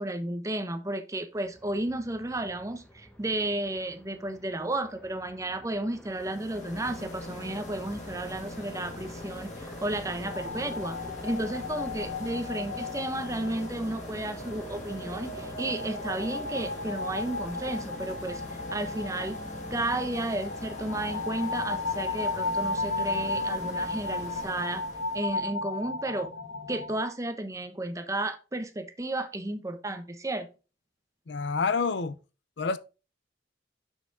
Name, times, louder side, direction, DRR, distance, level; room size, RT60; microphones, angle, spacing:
voice 1, 0.0-11.0 11.2-19.4 19.7-24.8 25.1-26.3 26.7-30.5, right 1 dB, 15° right, 0.8 m, -33 dB
Aircraft, 1.3-21.2, equal, 5° left, 1.2 m, -49 dB
sound 1, 6.0-25.4, left 2 dB, 40° left, 2.3 m, -42 dB
sound 2, 10.2-27.0, left 2 dB, 80° left, 0.9 m, -35 dB
voice 2, 31.3-32.1 32.6-32.8, left 4 dB, 65° left, 0.5 m, -27 dB
6.5 x 5.9 x 3.6 m
head